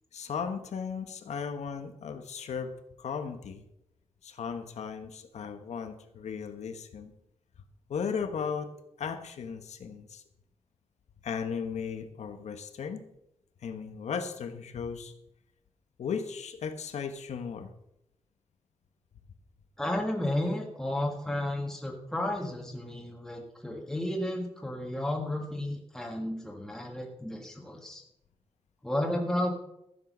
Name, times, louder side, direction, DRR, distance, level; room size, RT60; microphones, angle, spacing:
voice 1, 0.1-2.7 3.0-3.6 4.2-7.1 7.9-8.7 9.0-10.2 11.2-13.0 13.6-15.1 16.0-17.7, left 6 dB, 85° left, 8 dB, 1.3 m, -36 dB
voice 2, 19.8-28.0 28.8-29.5, left 1 dB, 5° left, 0 dB, 1.7 m, -32 dB
14.0 x 7.6 x 6.2 m, 0.84 s
wide cardioid pair, 150°, 11 cm